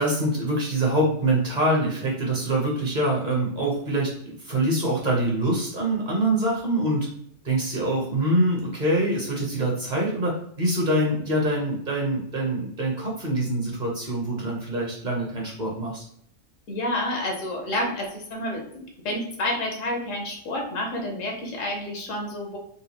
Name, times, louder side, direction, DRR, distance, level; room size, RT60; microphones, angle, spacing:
voice 1, 0.0-4.1 4.4-7.1 7.4-16.0, right 1 dB, 40° right, -2 dB, 0.8 m, -24 dB
voice 2, 16.7-22.6, left 1 dB, 80° left, 1 dB, 1.2 m, -29 dB
3.9 x 2.3 x 2.8 m, 0.68 s
omnidirectional pair, 1.3 m